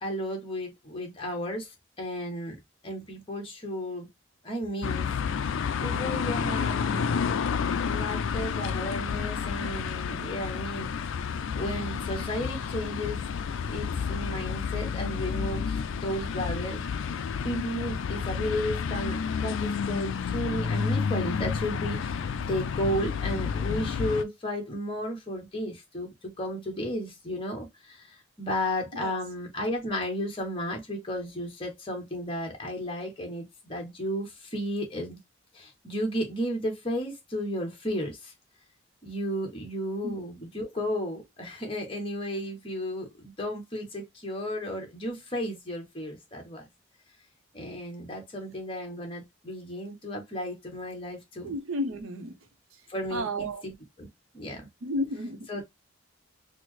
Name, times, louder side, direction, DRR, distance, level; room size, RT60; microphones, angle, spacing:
voice 1, 0.0-2.6 2.8-4.1 4.4-5.1 5.8-13.3 13.6-16.8 17.4-35.2 35.5-38.3 39.0-46.6 47.5-51.5 52.9-54.1 54.3-54.7 55.5-55.6, equal, 25° left, 1.2 m, -34 dB
sound 1, 4.8-24.2, left 6 dB, 70° left, 0.4 m, -30 dB
voice 2, 51.4-52.4 53.1-53.6 54.8-55.5, equal, 80° right, 0.7 m, -32 dB
4.3 x 2.1 x 3.0 m
head